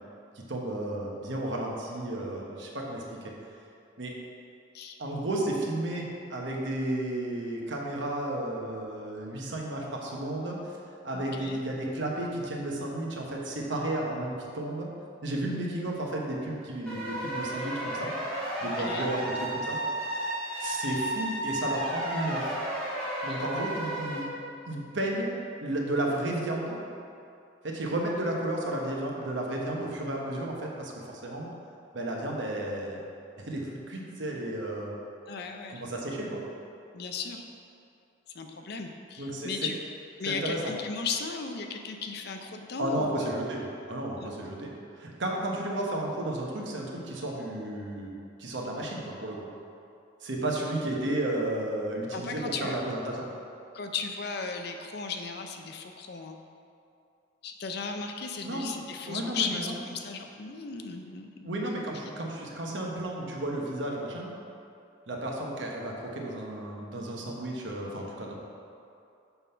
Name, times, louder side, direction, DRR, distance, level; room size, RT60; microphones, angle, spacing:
voice 1, 0.5-3.2 4.0-4.1 5.0-10.6 11.0-14.9 15.2-18.1 18.6-19.8 20.6-22.6 23.2-24.3 24.7-25.3 25.6-26.8 27.6-30.9 31.2-31.5 31.9-33.0 33.4-35.0 35.7-36.4 39.2-39.5 40.2-40.7 42.8-49.4 50.2-53.3 58.4-58.7 59.0-59.7 61.4-64.3 65.1-68.3, right 1 dB, 70° right, -1 dB, 1.0 m, -33 dB
voice 2, 11.1-11.6 18.6-19.1 23.3-23.4 35.3-35.8 36.9-37.4 38.3-39.8 40.2-43.3 44.2-44.3 52.1-52.8 53.7-56.4 57.4-61.6, left 5 dB, 55° left, 4 dB, 0.5 m, -36 dB
sound 1, 16.9-24.2, right 1 dB, 5° left, 1.5 m, -33 dB
7.0 x 3.8 x 5.5 m, 2.6 s
head